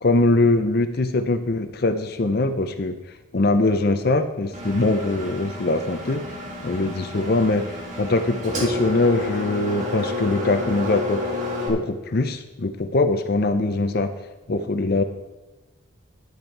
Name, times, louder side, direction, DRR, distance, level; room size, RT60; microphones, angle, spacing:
voice 1, 0.0-3.0 3.3-6.2 6.6-7.7 8.0-11.2 11.7-14.1 14.5-15.0, left 2 dB, 45° left, 9 dB, 0.6 m, -22 dB
Engine, 4.5-11.7, left 2 dB, 35° right, 1.8 m, -30 dB
10.5 x 8.1 x 4.6 m, 1.0 s
head